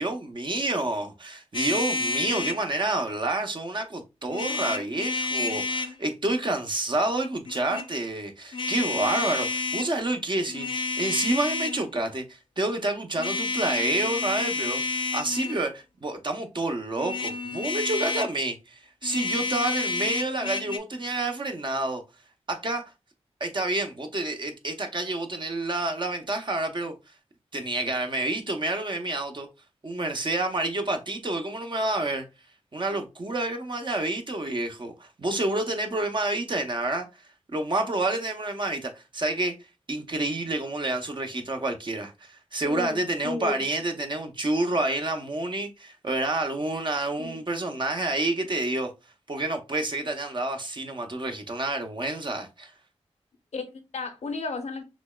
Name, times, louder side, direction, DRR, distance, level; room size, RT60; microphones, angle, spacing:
voice 1, 0.0-14.8 15.1-22.0 22.5-22.8 23.4-26.9 27.5-29.5 29.8-32.3 32.7-37.1 37.5-39.5 39.9-48.9 49.3-52.7, right 2 dB, 40° right, 0.7 m, -29 dB
sound 1, 1.5-2.6 4.3-5.9 7.5-7.9 8.5-9.9 10.5-11.9 13.2-15.6 17.0-18.4 19.0-20.8, left 3 dB, 45° left, 0.5 m, -29 dB
voice 2, 42.6-43.6 47.2-47.4 53.5-54.8, left 3 dB, 70° left, 0.8 m, -34 dB
5.9 x 2.1 x 2.2 m
cardioid pair, 50°, 12 cm